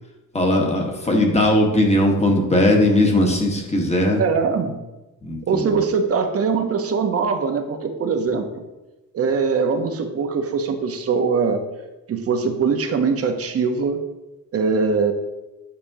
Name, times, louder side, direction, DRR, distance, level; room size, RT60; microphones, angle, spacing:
voice 1, 0.3-4.2 5.2-5.8, left 1 dB, 20° left, 1 dB, 1.2 m, -19 dB
voice 2, 4.2-4.8 5.5-8.6 9.1-11.6 12.1-14.0 14.5-15.1, right 5 dB, 45° right, 6 dB, 0.8 m, -22 dB
8.6 x 4.2 x 2.7 m, 1.0 s
cardioid pair, 110°, 33 cm